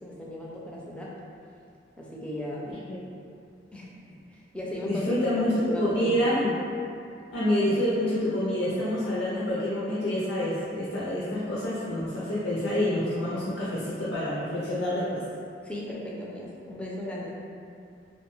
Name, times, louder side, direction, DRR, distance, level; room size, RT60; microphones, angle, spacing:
voice 1, 0.0-1.1 2.0-2.7 3.7-3.9 4.3-5.0 5.6-6.2 15.6-17.4, left 1 dB, 5° left, -5 dB, 0.4 m, -37 dB
voice 2, 4.8-6.8 7.3-15.2, left 1 dB, 70° left, -8 dB, 0.5 m, -27 dB
2.5 x 2.2 x 3.0 m, 2.4 s
head